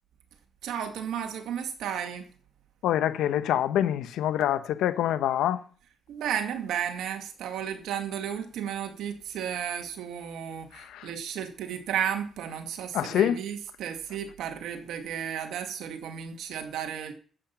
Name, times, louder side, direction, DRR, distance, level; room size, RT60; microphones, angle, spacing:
voice 1, 0.6-2.3 6.1-17.1, right 9 dB, 80° right, 2.4 m, -33 dB
voice 2, 2.8-5.6 10.7-11.1 12.9-13.4, left 11 dB, 85° left, 0.9 m, -26 dB
11.5 x 8.6 x 5.9 m
cardioid pair, 90°, 0 cm